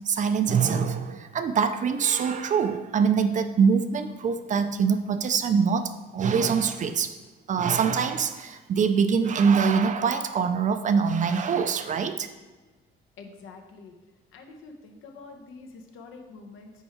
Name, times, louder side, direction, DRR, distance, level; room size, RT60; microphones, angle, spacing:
voice 1, 0.1-7.1 7.5-12.3, right 6 dB, 40° right, 9 dB, 0.4 m, -24 dB
voice 2, 13.2-13.9 14.3-16.7, left 4 dB, 75° left, 3 dB, 1.0 m, -46 dB
5.5 x 4.6 x 4.4 m, 1.3 s
cardioid pair, 125°, 21 cm